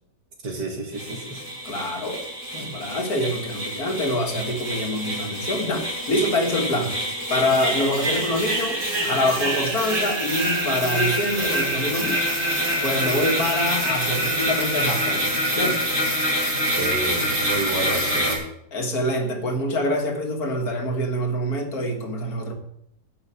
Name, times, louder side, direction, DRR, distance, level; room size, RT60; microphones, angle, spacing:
voice 1, 0.4-1.4 2.6-2.8 16.8-18.5, right 2 dB, 80° right, 2 dB, 2.7 m, -30 dB
sound 1, 0.9-18.4, right 1 dB, 55° right, 4.2 m, -26 dB
voice 2, 1.7-2.3 2.5-7.0 7.3-12.2 12.8-15.8 18.7-22.5, left 1 dB, 60° left, 4 dB, 2.0 m, -25 dB
11.0 x 5.6 x 8.6 m, 0.77 s
omnidirectional pair, 1.8 m